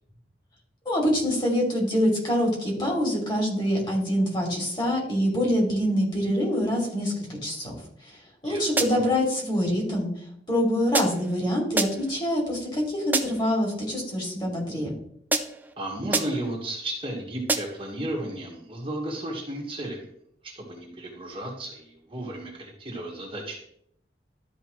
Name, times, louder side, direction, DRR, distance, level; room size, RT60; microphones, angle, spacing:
voice 1, 0.8-7.7 8.0-8.2 8.4-10.1 10.5-14.9, equal, 25° left, -2 dB, 2.7 m, -25 dB
sound 1, 8.8-9.2 10.9-11.4 11.8-12.2 13.1-13.6 15.3-15.7 16.1-16.6 17.5-17.9, right 3 dB, 10° right, 0.5 m, -28 dB
voice 2, 15.8-20.1 20.4-23.6, right 1 dB, 30° right, -2 dB, 1.7 m, -34 dB
12.5 x 5.0 x 3.2 m, 0.69 s
head